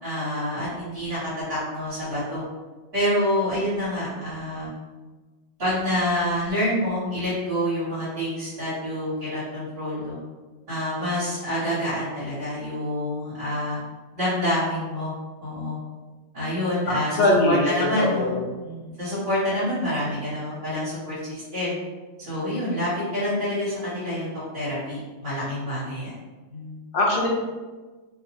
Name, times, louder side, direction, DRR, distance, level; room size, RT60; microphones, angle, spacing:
voice 1, 0.0-2.4 2.9-4.7 5.6-10.2 10.7-13.8 14.1-15.1 15.4-15.8 16.3-18.3 18.6-21.7 22.3-24.3 24.5-26.1 26.5-26.8, left 1 dB, 50° right, -13 dB, 1.4 m, -27 dB
voice 2, 16.9-18.4 26.9-27.3, left 1 dB, 60° left, -2 dB, 0.7 m, -21 dB
2.6 x 2.4 x 2.9 m, 1.3 s
omnidirectional pair, 1.2 m